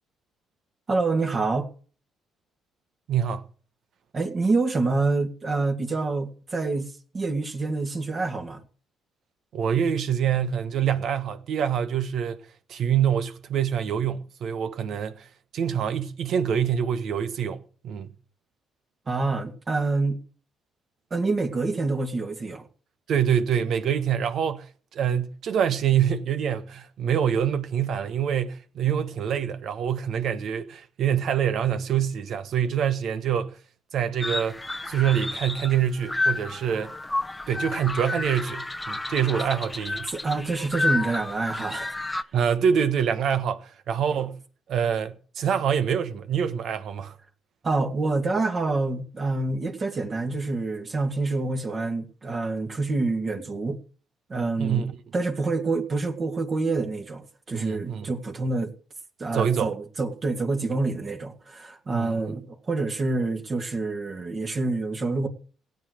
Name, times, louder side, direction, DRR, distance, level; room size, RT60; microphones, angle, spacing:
voice 1, 0.9-1.7 4.1-8.6 19.1-20.2 21.1-22.6 40.1-41.9 47.6-53.8 54.3-54.8 55.1-58.7 59.2-65.3, right 3 dB, 35° right, 2.3 m, -27 dB
voice 2, 3.1-3.5 9.5-12.4 12.7-18.1 23.1-33.6 33.9-34.6 34.9-36.9 37.5-40.1 42.3-44.4 44.7-47.2 54.6-55.0 57.5-58.1 59.3-59.7 61.9-62.4, right 8 dB, 65° right, 1.3 m, -25 dB
sound 1, 34.2-42.2, left 2 dB, 15° left, 0.8 m, -30 dB
16.5 x 8.1 x 6.4 m
cardioid pair, 85°, 0 cm